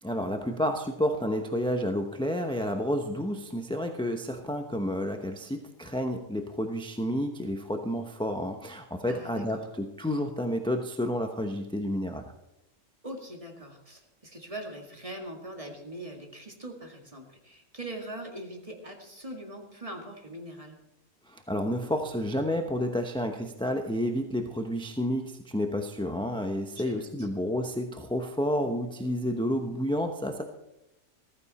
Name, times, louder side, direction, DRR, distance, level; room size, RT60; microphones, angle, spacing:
voice 1, 0.0-12.3 21.3-30.4, equal, 5° left, 4 dB, 0.7 m, -30 dB
voice 2, 9.1-9.6 13.0-20.8 26.8-27.3, right 1 dB, 25° right, 2 dB, 2.1 m, -42 dB
15.0 x 14.5 x 4.2 m, 0.87 s
omnidirectional pair, 1.4 m